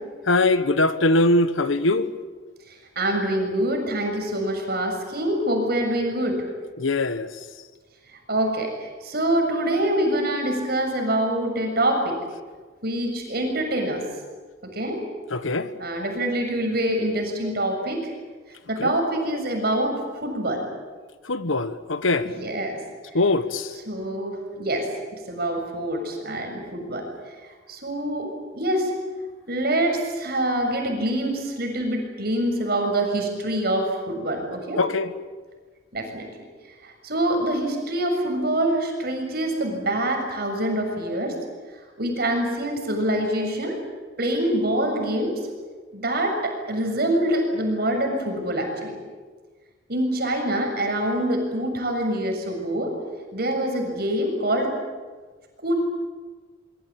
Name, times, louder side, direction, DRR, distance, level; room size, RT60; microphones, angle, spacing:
voice 1, 0.3-2.1 6.8-7.3 15.3-15.7 18.8-18.9 21.2-22.3 23.1-23.7 34.8-35.1, left 2 dB, 90° left, 1.4 m, -22 dB
voice 2, 2.7-6.4 8.3-12.2 12.8-14.0 14.6-15.0 15.8-18.1 18.7-20.6 22.2-22.8 23.9-27.1 27.7-28.9 29.5-34.8 35.9-36.3 36.8-41.3 42.0-43.8 44.2-45.4 45.9-49.0 49.9-52.9 53.3-54.7 55.6-55.7, right 1 dB, 50° right, 7.1 m, -25 dB
25.0 x 23.5 x 8.8 m
head